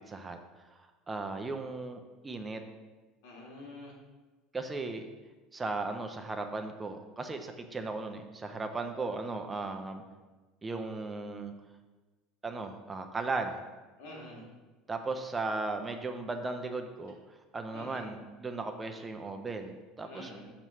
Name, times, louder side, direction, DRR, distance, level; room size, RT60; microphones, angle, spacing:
voice 1, 0.1-0.4 0.8-2.6 4.5-5.1 5.5-10.0 10.6-11.5 12.4-13.7 14.9-17.1 17.5-20.3, right 3 dB, 15° right, 5 dB, 0.5 m, -36 dB
voice 2, 3.2-3.9 14.0-14.5 17.7-18.1 20.0-20.5, left 1 dB, 80° left, -2 dB, 2.0 m, -47 dB
7.2 x 3.1 x 5.5 m, 1.2 s
supercardioid pair, 135°, 0 cm